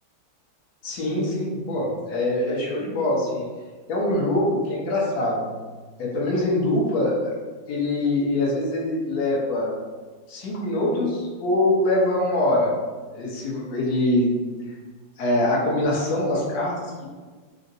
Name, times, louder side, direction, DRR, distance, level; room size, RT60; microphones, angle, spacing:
voice 1, 0.8-3.5 3.9-5.4 6.0-7.3 7.7-9.7 10.3-12.7 13.1-14.3 15.2-17.1, left 1 dB, 60° left, -4 dB, 1.1 m, -23 dB
3.7 x 2.1 x 2.6 m, 1.4 s
omnidirectional pair, 2.3 m